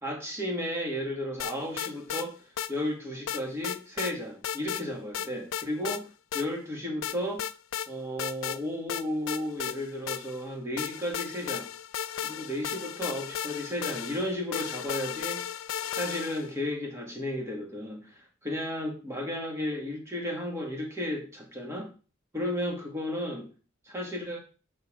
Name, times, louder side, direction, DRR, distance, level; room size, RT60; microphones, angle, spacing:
voice 1, 0.0-2.4 2.7-6.0 6.3-7.4 7.9-11.7 12.2-15.4 15.9-21.9 22.3-23.5 23.8-24.4, left 1 dB, 15° right, 0 dB, 1.7 m, -33 dB
sound 1, 1.4-2.3 2.6-2.7 3.3-4.1 4.4-4.8 5.1-6.0 6.3-6.5 7.0-7.9 8.2-8.6 8.9-10.4 10.8-16.5, left 9 dB, 85° left, 0.4 m, -35 dB
8.2 x 3.8 x 4.9 m, 0.36 s
head